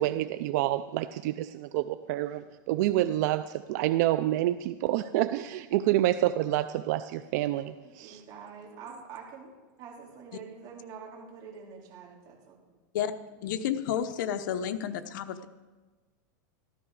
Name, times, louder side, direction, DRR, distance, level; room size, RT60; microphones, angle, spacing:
voice 1, 0.0-8.2, right 14 dB, 60° right, 12 dB, 0.5 m, -28 dB
voice 2, 7.7-9.5 9.8-12.8, right 6 dB, 40° right, -1 dB, 3.4 m, -46 dB
voice 3, 13.4-15.4, left 9 dB, 70° left, 11 dB, 0.9 m, -31 dB
14.0 x 13.5 x 4.8 m, 1.3 s
supercardioid pair, 145°, 11 cm